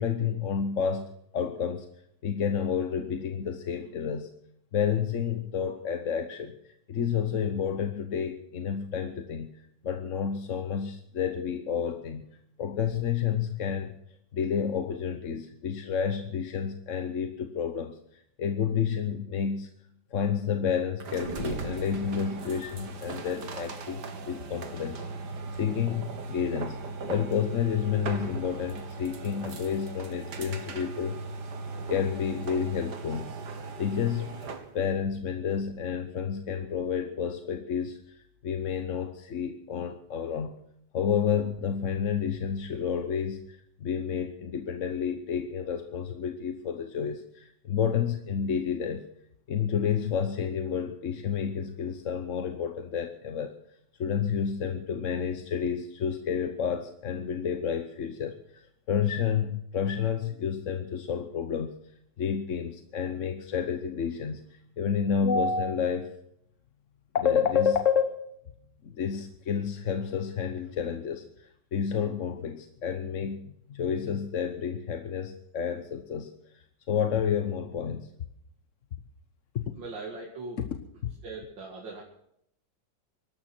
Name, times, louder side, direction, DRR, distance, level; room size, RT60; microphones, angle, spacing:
voice 1, 0.0-1.9 2.2-4.3 4.7-9.5 9.8-12.2 12.6-13.9 14.3-19.7 20.1-25.0 25.5-26.8 27.1-31.2 31.9-33.3 33.8-34.3 34.7-40.6 40.9-49.1 49.5-53.5 54.0-61.7 62.2-66.1 67.1-68.4 68.8-78.1 79.5-79.6 81.0-81.1, left 7 dB, 50° left, 7 dB, 1.1 m, -30 dB
sound 1, 21.0-34.7, right 4 dB, 65° right, 2.1 m, -38 dB
voice 2, 79.7-80.6 81.2-82.0, right 3 dB, 80° right, -1 dB, 3.0 m, -40 dB
23.0 x 12.5 x 4.5 m, 0.75 s
omnidirectional pair, 2.0 m